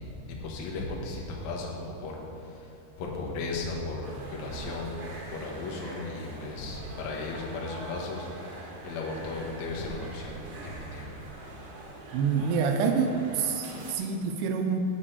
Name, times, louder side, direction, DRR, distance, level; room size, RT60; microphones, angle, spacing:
voice 1, 0.0-2.7 3.0-11.3, left 3 dB, 65° left, -2 dB, 1.8 m, -36 dB
sound 1, 4.0-13.9, right 2 dB, 60° right, 3.3 m, -44 dB
voice 2, 12.1-14.8, right 6 dB, 80° right, 5 dB, 2.4 m, -27 dB
10.5 x 6.8 x 8.6 m, 2.7 s
omnidirectional pair, 5.7 m